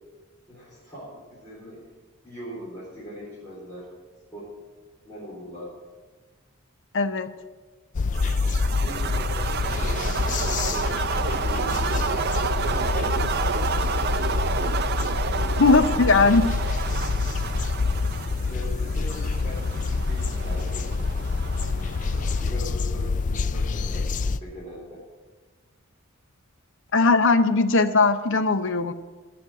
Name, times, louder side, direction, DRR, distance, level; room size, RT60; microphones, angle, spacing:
voice 1, 0.5-1.8 2.2-3.9 4.3-4.5 5.0-5.7 8.6-12.0 12.5-14.3 18.4-20.9 21.7-25.0, equal, 15° left, -11 dB, 3.8 m, -41 dB
voice 2, 6.9-7.3 15.6-16.5 26.9-28.9, left 3 dB, 60° left, 10 dB, 0.7 m, -19 dB
sound 1, 7.9-24.4, left 4 dB, 35° left, 0.3 m, -26 dB
sound 2, 8.1-22.5, right 6 dB, 50° right, 0.5 m, -30 dB
11.0 x 6.2 x 8.8 m, 1.3 s
head